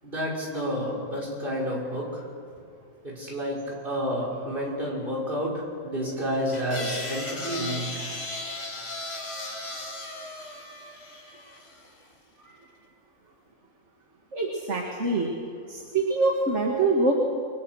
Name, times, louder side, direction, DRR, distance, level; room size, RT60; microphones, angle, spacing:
voice 1, 0.0-2.2 3.0-3.6 3.8-5.5 5.8-7.9, equal, 35° right, -3 dB, 6.8 m, -30 dB
sound 1, 6.5-11.9, left 2 dB, 45° left, 2.7 m, -36 dB
voice 2, 14.3-15.3 15.7-17.2, right 3 dB, 55° right, 0 dB, 2.5 m, -25 dB
29.0 x 22.5 x 6.5 m, 2.4 s
omnidirectional pair, 1.5 m